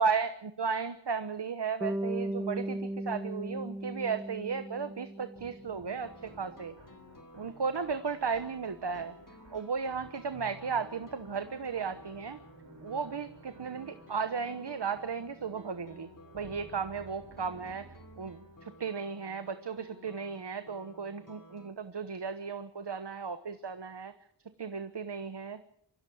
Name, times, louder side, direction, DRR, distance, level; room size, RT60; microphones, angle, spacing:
voice 1, 0.0-6.7 7.4-9.1 9.5-12.4 12.8-16.1 16.3-17.8 18.2-24.1 24.6-25.6, right 5 dB, 65° right, 10 dB, 1.1 m, -35 dB
Bass guitar, 1.8-5.9, right 1 dB, 5° right, 1.2 m, -37 dB
sound 1, 5.3-19.0, right 3 dB, 85° right, 4.2 m, -54 dB
sound 2, 6.0-21.7, left 1 dB, 45° left, 3.2 m, -55 dB
24.5 x 15.5 x 7.2 m, 0.70 s
wide cardioid pair, 50°, 44 cm